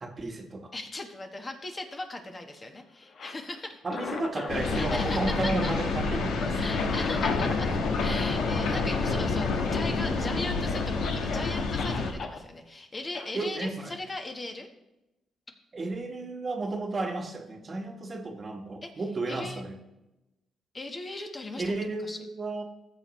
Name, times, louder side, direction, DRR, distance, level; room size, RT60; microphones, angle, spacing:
voice 1, 0.0-0.7 3.8-6.7 10.5-10.7 13.3-14.0 15.7-19.8 21.6-22.6, right 2 dB, 35° right, 4 dB, 1.3 m, -33 dB
voice 2, 0.7-3.8 4.7-5.7 6.5-14.7 18.8-18.9 19.3-19.6 20.7-21.7 22.0-22.2, left 2 dB, 30° left, 5 dB, 1.1 m, -38 dB
Cough, 3.0-5.0 5.2-7.9 8.2-8.4 8.8-8.9 9.2-9.8 10.2-10.3 10.6-12.4 13.1-13.3, left 4 dB, 55° left, 1.1 m, -39 dB
sound 1, 4.5-12.1, left 4 dB, 80° left, 1.3 m, -28 dB
14.5 x 6.8 x 3.1 m, 0.94 s
cardioid pair, 90°, 0 cm